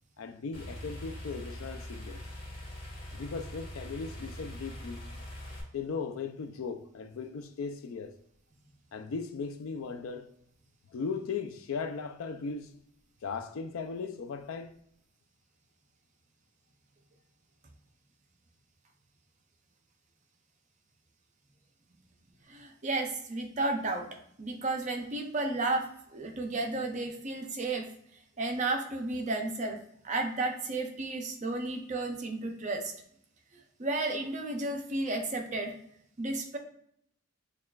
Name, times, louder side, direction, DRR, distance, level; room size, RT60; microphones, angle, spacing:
voice 1, 0.2-2.2 3.1-5.0 5.7-8.1 8.9-10.3 10.9-12.7 13.2-14.8, left 5 dB, 70° left, 0.4 m, -37 dB
sound 1, 0.5-5.6, left 1 dB, 40° left, 1.4 m, -43 dB
voice 2, 22.5-24.1 24.4-27.9 28.4-29.8 30.0-32.9 33.8-35.7 36.2-36.6, right 2 dB, 35° right, 0.5 m, -32 dB
6.4 x 2.3 x 2.3 m
head